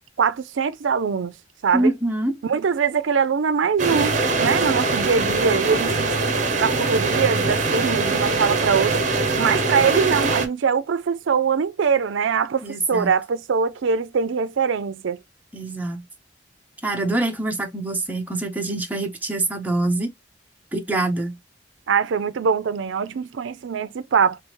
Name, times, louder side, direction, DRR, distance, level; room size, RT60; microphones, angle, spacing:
voice 1, 0.2-1.3 1.6-1.9 2.4-4.1 4.4-6.1 6.5-9.0 9.4-15.2 21.9-24.4, right 6 dB, 80° right, 0.4 m, -22 dB
voice 2, 1.7-2.4 12.6-13.1 15.5-16.0 16.8-20.1 20.7-21.4, right 2 dB, 10° right, 0.7 m, -25 dB
sound 1, 3.8-10.5, right 3 dB, 40° right, 0.8 m, -22 dB
3.4 x 3.2 x 3.0 m
head